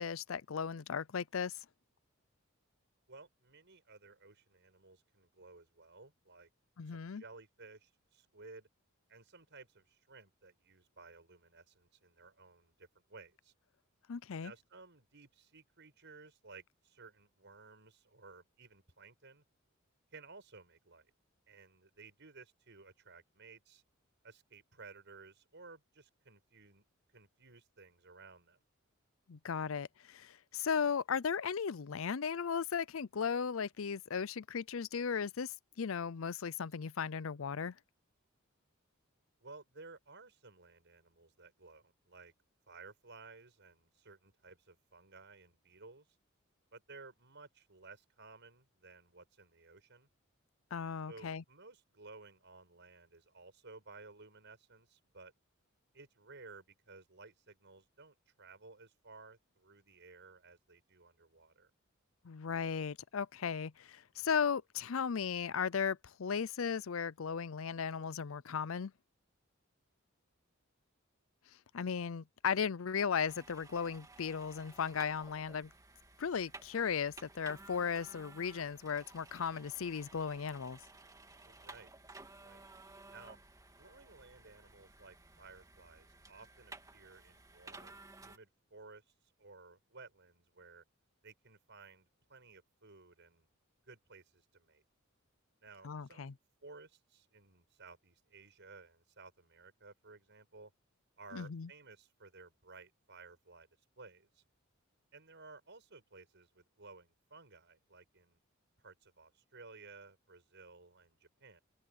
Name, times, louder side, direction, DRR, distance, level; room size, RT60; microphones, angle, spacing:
voice 1, 0.0-1.6 6.8-7.2 14.1-14.5 29.3-37.7 50.7-51.4 62.2-68.9 71.7-75.7 76.2-80.8 95.8-96.3 101.3-101.7, left 6 dB, 70° left, 0.5 m, -36 dB
voice 2, 3.1-6.5 6.9-8.7 9.1-13.5 14.4-19.4 20.1-21.1 21.5-23.8 24.2-26.8 27.1-28.6 39.4-42.3 42.7-46.1 46.7-50.1 51.1-55.3 55.9-61.7 81.4-81.9 82.4-82.7 83.1-83.4 83.8-89.1 89.4-90.8 91.2-93.5 93.9-94.8 95.6-96.3 96.6-100.7 101.2-103.7 104.0-104.4 105.1-108.4 108.8-111.6, right 3 dB, 60° right, 6.7 m, -56 dB
sound 1, 73.3-88.4, right 2 dB, 15° right, 2.4 m, -56 dB
head